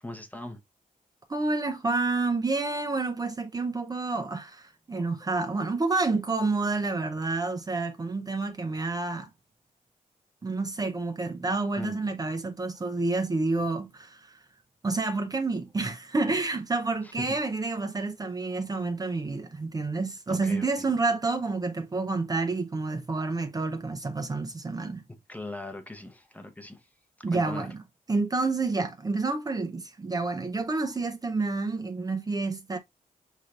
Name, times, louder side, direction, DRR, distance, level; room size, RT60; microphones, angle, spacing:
voice 1, 0.0-0.6 4.9-5.3 11.8-12.0 13.0-13.1 17.2-17.4 20.3-20.7 25.3-26.8 27.3-27.7, left 2 dB, 10° left, 0.8 m, -39 dB
voice 2, 1.3-9.3 10.4-14.4 14.8-25.0 27.2-27.8 28.1-32.8, right 3 dB, 25° right, 0.5 m, -29 dB
5.4 x 3.2 x 2.4 m
wide cardioid pair, 115°, 14 cm